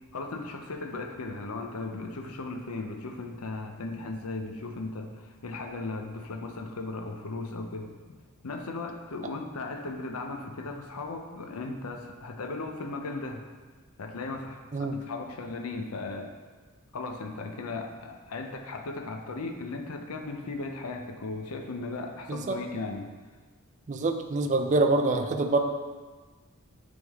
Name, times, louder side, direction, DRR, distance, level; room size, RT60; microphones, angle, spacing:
voice 1, 0.1-7.9 8.4-13.4 14.0-16.3 16.9-23.1, left 3 dB, 75° left, 4 dB, 0.6 m, -37 dB
voice 2, 23.9-25.6, right 2 dB, 35° right, 4 dB, 0.5 m, -25 dB
9.2 x 3.6 x 3.6 m, 1.4 s
head